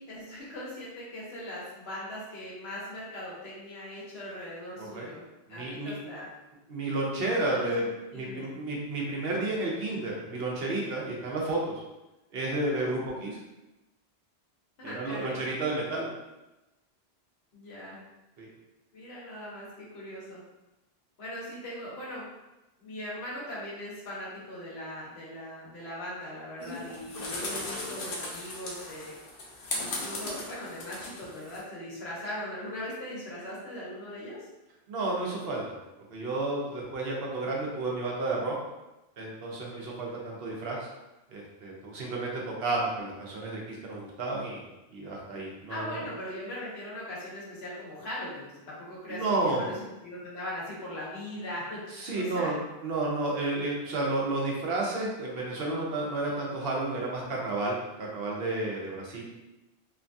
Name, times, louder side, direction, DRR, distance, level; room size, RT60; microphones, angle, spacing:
voice 1, 0.0-5.2 5.5-6.3 7.5-8.4 14.8-15.4 17.5-18.0 18.9-20.4 21.2-22.2 22.8-29.1 29.7-34.5 45.7-52.5, left 1 dB, 85° left, -6 dB, 1.2 m, -40 dB
voice 2, 5.5-5.9 6.7-7.8 8.1-11.8 12.3-13.4 14.8-16.1 18.4-18.5 34.9-35.6 36.1-38.5 39.2-40.9 41.3-44.7 44.9-46.1 49.1-49.7 52.0-52.6 52.8-59.3, right 2 dB, 70° right, -2 dB, 0.9 m, -31 dB
sound 1, 26.6-31.6, left 2 dB, 65° left, 0.7 m, -37 dB
3.0 x 2.3 x 2.6 m, 1.0 s
omnidirectional pair, 1.0 m